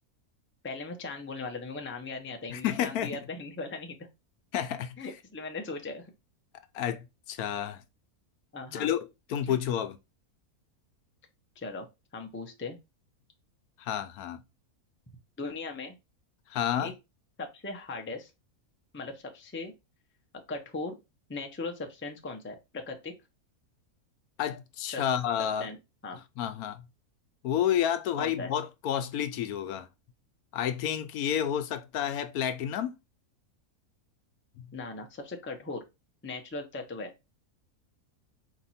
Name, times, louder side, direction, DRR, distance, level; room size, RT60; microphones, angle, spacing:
voice 1, 0.6-4.1 5.0-6.1 8.5-8.9 9.4-9.6 11.6-11.9 12.1-12.8 15.4-16.0 16.8-16.9 17.4-18.3 18.9-19.7 20.3-20.9 21.3-23.1 24.9-25.1 25.4-25.8 26.0-26.2 28.1-28.5 34.7-35.8 36.2-37.1, left 3 dB, 15° left, 0.5 m, -38 dB
voice 2, 2.5-3.1 4.5-5.0 6.7-7.8 8.7-9.0 9.3-10.0 13.8-14.4 16.5-16.9 24.4-25.7 26.4-26.8 27.4-29.9 30.5-32.9 34.6-34.7, left 10 dB, 80° left, 1.1 m, -30 dB
4.3 x 3.0 x 4.1 m
omnidirectional pair, 1.6 m